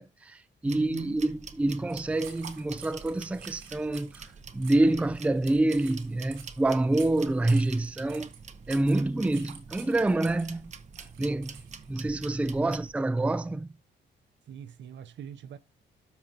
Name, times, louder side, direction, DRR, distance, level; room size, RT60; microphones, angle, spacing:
voice 1, 0.0-4.2 4.5-8.3 8.7-10.7 11.2-11.6 11.9-13.7, right 2 dB, 5° right, 0.4 m, -27 dB
sound 1, 0.6-12.9, right 5 dB, 35° right, 0.8 m, -47 dB
voice 2, 0.7-1.2 12.6-12.8 14.5-15.6, right 9 dB, 65° right, 0.8 m, -42 dB
sound 2, 1.9-11.9, right 7 dB, 90° right, 2.9 m, -51 dB
12.5 x 4.7 x 2.9 m
cardioid pair, 90°, 20 cm